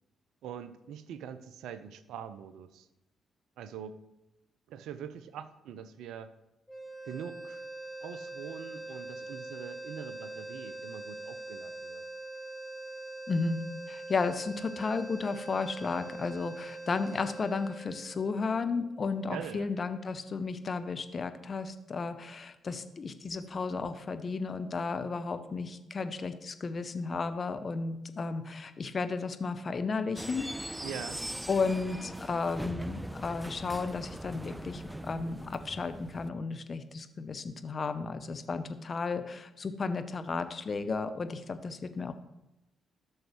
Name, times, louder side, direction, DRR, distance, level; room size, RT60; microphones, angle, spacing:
voice 1, 0.4-2.9 3.6-4.0 4.7-6.3 7.0-7.7 8.0-12.0 19.3-19.7 30.8-31.2, right 8 dB, 65° right, 13 dB, 0.5 m, -43 dB
sound 1, 6.7-18.9, right 2 dB, 10° left, 2.9 m, -43 dB
voice 2, 13.3-13.6 13.9-30.5 31.5-42.2, left 4 dB, 40° left, 9 dB, 0.7 m, -33 dB
sound 2, 30.2-36.3, right 1 dB, 5° right, 0.4 m, -41 dB
13.0 x 6.3 x 3.2 m, 0.96 s
figure-of-eight pair, 40°, 0 cm